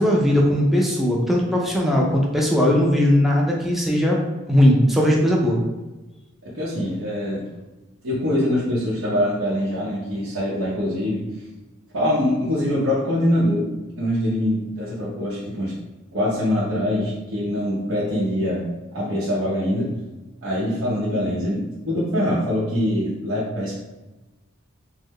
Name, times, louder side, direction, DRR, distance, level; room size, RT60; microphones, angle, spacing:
voice 1, 0.0-4.2 4.5-5.6, equal, ahead, -2 dB, 0.3 m, -18 dB
voice 2, 6.4-7.4 8.0-11.3 11.9-13.7 14.0-15.7 16.1-18.7 18.9-19.9 20.4-23.7, left 1 dB, 80° right, -9 dB, 0.8 m, -23 dB
3.6 x 2.0 x 3.1 m, 1.1 s
head